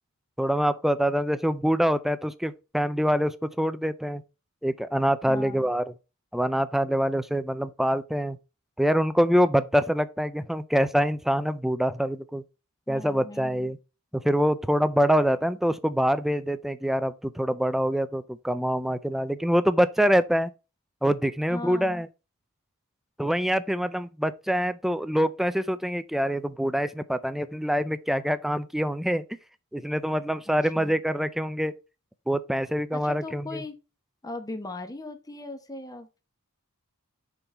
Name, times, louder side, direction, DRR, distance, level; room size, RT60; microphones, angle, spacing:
voice 1, 0.4-4.2 4.6-5.8 6.3-8.4 8.8-12.4 12.9-13.8 14.1-20.5 21.0-22.1 23.2-29.2 29.7-31.7 32.3-33.6, equal, ahead, 0.4 m, -25 dB
voice 2, 5.3-5.7 12.9-13.7 21.5-22.0 30.7-31.0 32.9-33.8 34.2-36.2, left 2 dB, 15° left, 0.9 m, -39 dB
6.9 x 3.8 x 4.4 m
head